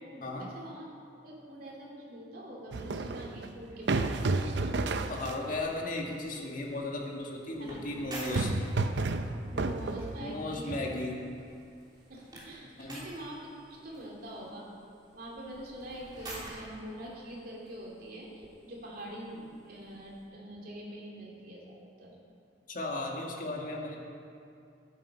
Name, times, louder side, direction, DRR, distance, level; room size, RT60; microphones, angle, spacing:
voice 1, 0.0-0.9 1.2-4.6 7.6-7.8 9.5-10.9 12.1-14.7 15.1-22.1, right 1 dB, 55° right, -3 dB, 2.9 m, -44 dB
sound 1, 2.7-5.6 8.0-10.4, right 3 dB, 75° right, 0.6 m, -31 dB
sound 2, 4.7-20.2, right 1 dB, 25° right, 3.1 m, -50 dB
voice 2, 5.1-8.5 10.2-11.2 12.8-13.0 22.7-24.0, left 2 dB, 50° left, -1 dB, 1.9 m, -35 dB
14.5 x 9.3 x 5.6 m, 2.5 s
head